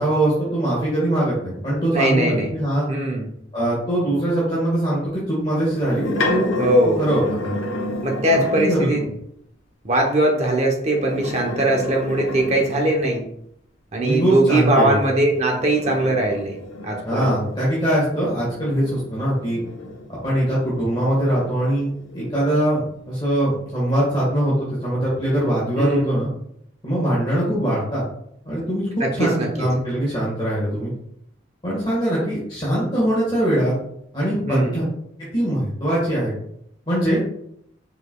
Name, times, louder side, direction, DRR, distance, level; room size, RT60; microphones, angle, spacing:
voice 1, 0.0-2.9 3.5-6.6 7.0-7.5 8.3-9.0 14.0-15.0 17.0-19.6 20.1-26.3 26.8-28.0 28.4-30.9 31.6-33.7 34.1-34.8 35.2-36.3 36.9-37.2, right 1 dB, 25° left, -7 dB, 1.6 m, -22 dB
voice 2, 1.9-2.5 2.9-3.3 6.6-7.0 8.0-9.0 9.8-13.3 13.9-16.6 16.8-17.3 25.8-26.1 29.0-29.7 34.5-34.8, right 1 dB, 35° right, 1 dB, 0.9 m, -20 dB
sound 1, 5.6-8.9 10.8-13.2 15.1-20.4 20.9-22.6, left 2 dB, 90° left, 0.8 m, -31 dB
5.1 x 4.5 x 2.3 m, 0.71 s
head